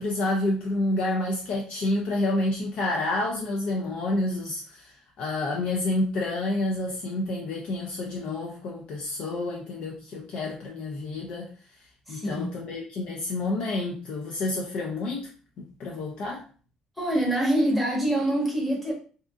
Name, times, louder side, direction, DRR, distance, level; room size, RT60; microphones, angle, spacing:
voice 1, 0.0-11.5 12.1-15.3 15.6-16.5, left 2 dB, 60° left, 0.4 m, -29 dB
voice 2, 12.1-12.5 17.0-18.9, right 1 dB, ahead, 0.8 m, -25 dB
2.7 x 2.3 x 2.3 m
cardioid pair, 160°, 2 cm